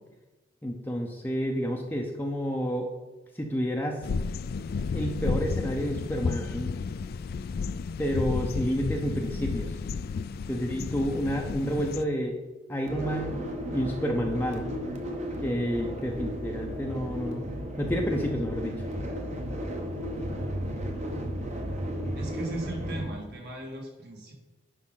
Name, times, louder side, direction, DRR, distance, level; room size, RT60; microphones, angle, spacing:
voice 1, 0.6-2.9 3.4-4.1 4.9-6.7 8.0-9.7 10.5-12.4 12.7-14.6 15.4-17.4 17.8-18.7, equal, 10° left, 1 dB, 0.6 m, -29 dB
sound 1, 4.0-12.0, left 4 dB, 50° left, 0.3 m, -32 dB
sound 2, 12.8-23.0, equal, 35° right, 1.1 m, -34 dB
voice 2, 22.2-24.3, right 2 dB, 55° right, 0 dB, 2.0 m, -37 dB
10.5 x 5.2 x 3.8 m, 1.2 s
head